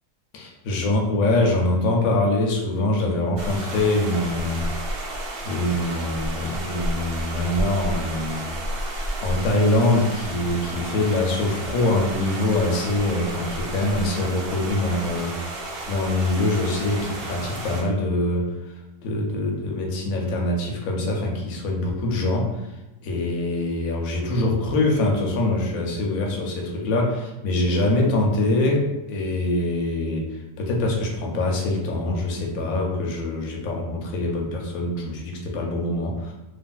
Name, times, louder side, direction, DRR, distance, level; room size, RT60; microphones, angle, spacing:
voice 1, 0.3-4.6 5.4-8.4 9.2-15.6 15.9-18.5 19.0-22.7 23.0-36.3, left 2 dB, 70° left, 0 dB, 1.0 m, -24 dB
sound 1, 3.4-17.8, right 1 dB, 80° right, 0.5 m, -32 dB
3.1 x 2.4 x 2.3 m, 1.0 s
omnidirectional pair, 1.7 m